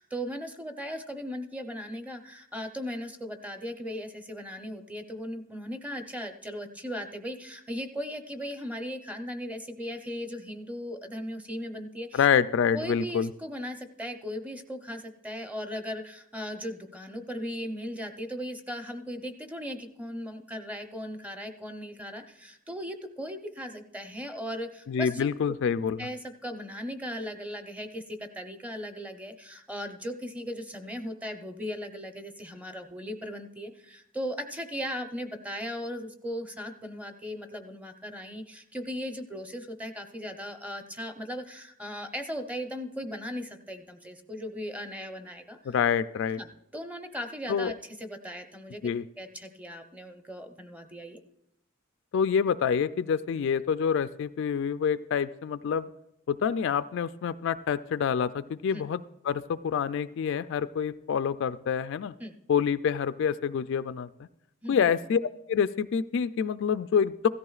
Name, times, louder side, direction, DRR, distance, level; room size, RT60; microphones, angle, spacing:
voice 1, 0.0-12.3 12.7-25.3 26.0-45.8 46.4-51.2 58.7-58.8 62.2-62.3 64.6-64.9, equal, 5° right, 6 dB, 0.6 m, -38 dB
voice 2, 12.1-13.3 24.9-26.0 45.7-46.4 47.5-47.7 48.8-49.0 52.1-55.9 56.3-62.1 62.5-64.3 64.7-65.2 65.5-67.3, left 7 dB, 60° left, 14 dB, 0.3 m, -27 dB
16.0 x 13.5 x 2.4 m, 0.78 s
head